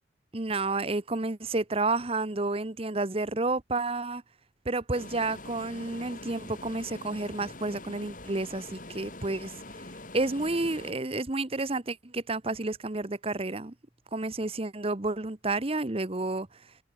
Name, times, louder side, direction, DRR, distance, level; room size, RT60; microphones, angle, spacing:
voice 1, 0.3-4.2 4.6-9.5 10.1-13.7 14.1-16.5, right 2 dB, 30° right, 1.0 m, -30 dB
sound 1, 4.9-10.9, left 2 dB, 45° left, 6.0 m, -44 dB
head